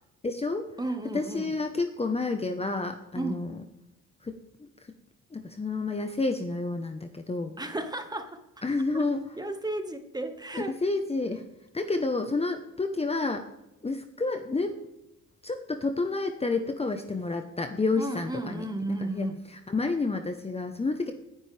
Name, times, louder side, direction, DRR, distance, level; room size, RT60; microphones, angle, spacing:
voice 1, 0.2-0.7 1.1-3.6 4.2-4.7 5.3-7.5 8.6-9.4 10.5-11.4 11.7-13.5 13.8-14.8 15.4-21.1, left 3 dB, 20° left, 6 dB, 1.0 m, -30 dB
voice 2, 0.8-1.5 3.1-3.5 7.6-8.4 8.9-9.0 9.4-10.8 18.0-19.4, right 2 dB, 15° right, 7 dB, 1.6 m, -33 dB
20.0 x 10.5 x 3.4 m, 0.92 s
cardioid pair, 90°, 30 cm